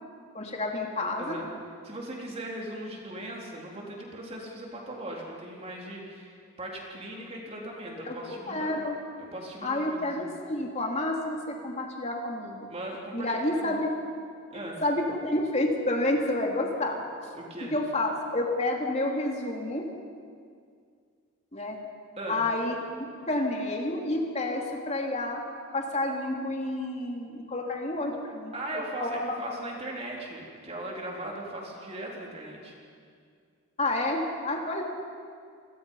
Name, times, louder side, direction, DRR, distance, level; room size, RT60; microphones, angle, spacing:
voice 1, 0.3-1.4 8.0-9.0 9.6-12.7 13.1-13.9 14.5-17.0 17.7-19.8 21.5-21.8 22.3-25.4 25.7-29.2 33.8-34.8, left 1 dB, 30° left, 1 dB, 2.8 m, -29 dB
voice 2, 1.2-1.5 1.8-8.8 9.2-10.3 12.7-13.8 14.5-14.8 17.3-17.8 22.2-22.4 28.5-32.7, right 1 dB, 30° right, -2 dB, 3.7 m, -39 dB
29.0 x 21.0 x 5.6 m, 2.2 s
head